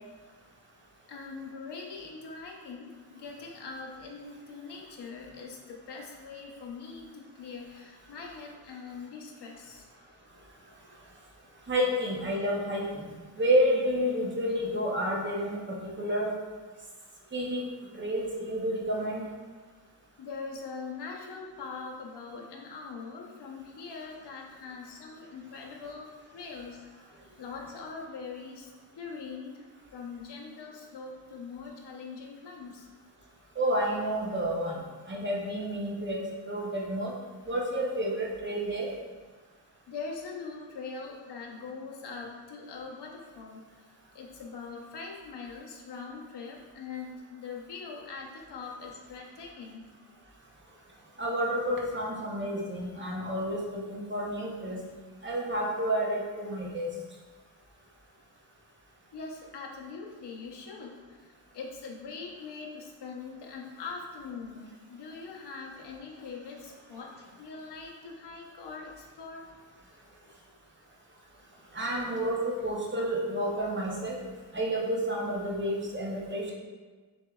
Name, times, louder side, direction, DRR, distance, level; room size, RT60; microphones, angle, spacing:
voice 1, 1.1-9.9 20.2-26.8 27.1-29.6 29.9-32.9 39.9-43.8 44.1-49.9 59.1-69.4 71.8-72.0, left 4 dB, 75° left, -1 dB, 0.9 m, -42 dB
voice 2, 11.7-13.0 13.4-15.6 16.0-16.3 17.3-17.6 17.9-19.2 33.6-34.7 35.1-36.2 36.5-37.1 37.5-38.9 51.2-54.8 55.2-56.9 71.7-74.2 74.5-76.5, equal, 30° right, -3 dB, 0.7 m, -30 dB
7.1 x 3.2 x 2.3 m, 1.4 s
wide cardioid pair, 160°, 41 cm